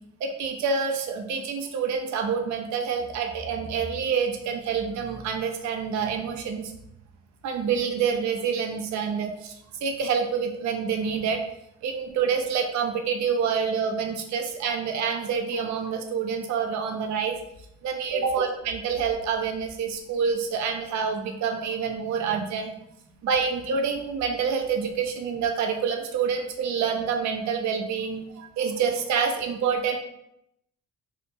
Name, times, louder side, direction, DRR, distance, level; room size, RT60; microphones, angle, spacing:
voice 1, 0.2-6.7 7.4-11.4 11.8-17.4 17.8-22.7 23.2-30.0, right 6 dB, 70° right, 4 dB, 0.5 m, -27 dB
2.8 x 2.1 x 2.6 m, 0.78 s
cardioid pair, 90°, 30 cm